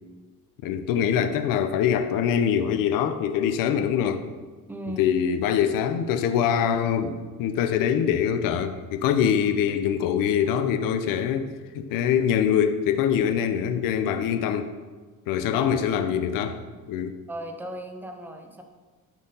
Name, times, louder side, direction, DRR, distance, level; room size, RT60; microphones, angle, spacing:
voice 1, 0.6-4.2 5.0-14.7 15.3-16.6 16.9-17.2, left 8 dB, 75° left, 8 dB, 0.8 m, -24 dB
voice 2, 4.7-5.1 15.5-15.9 17.3-18.6, right 1 dB, 5° right, 4 dB, 0.7 m, -36 dB
12.0 x 4.6 x 5.4 m, 1.4 s
cardioid pair, 175°, 34 cm